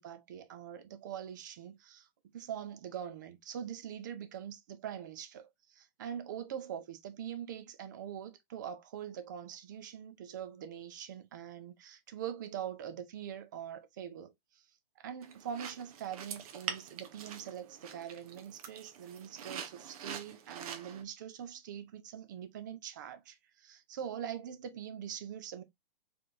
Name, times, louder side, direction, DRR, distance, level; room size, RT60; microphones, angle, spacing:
voice 1, 0.0-2.1 2.3-14.6 15.0-25.6, right 9 dB, 20° right, 0.4 m, -43 dB
sound 1, 15.2-21.0, right 8 dB, 40° right, 0.8 m, -45 dB
4.2 x 3.3 x 2.5 m
hypercardioid pair, 150°, 29 cm